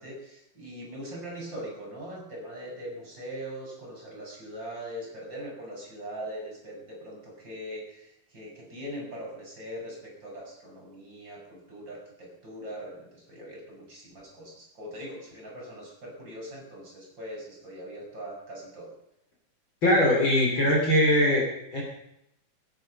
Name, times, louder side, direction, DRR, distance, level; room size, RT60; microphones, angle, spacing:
voice 1, 0.0-18.9, equal, 30° right, -2 dB, 5.8 m, -41 dB
voice 2, 19.8-21.4 21.7-21.8, left 1 dB, 35° left, -2 dB, 3.8 m, -21 dB
20.0 x 9.6 x 5.5 m, 0.81 s
omnidirectional pair, 3.9 m